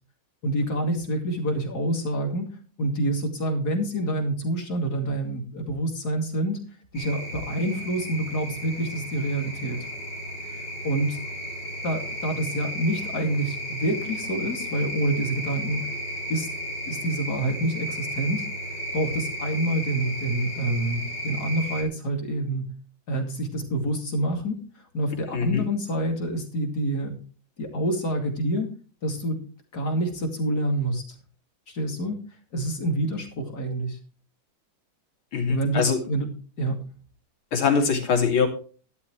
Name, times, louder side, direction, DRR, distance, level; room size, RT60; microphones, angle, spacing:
voice 1, 0.4-2.5 2.8-6.6 6.9-9.9 10.4-11.2 11.8-15.8 16.3-16.5 16.9-18.5 18.9-22.7 23.1-24.6 24.9-27.2 27.6-28.7 29.0-29.4 29.7-31.0 31.7-32.2 32.5-34.0 35.5-36.3 36.6-36.9, right 1 dB, 50° left, 3 dB, 3.0 m, -27 dB
sound 1, 6.9-21.8, equal, 30° left, 2.9 m, -34 dB
voice 2, 25.3-25.6 35.3-36.0 37.5-38.5, left 5 dB, 85° left, 3 dB, 3.4 m, -22 dB
12.5 x 12.5 x 3.2 m, 0.38 s
omnidirectional pair, 2.2 m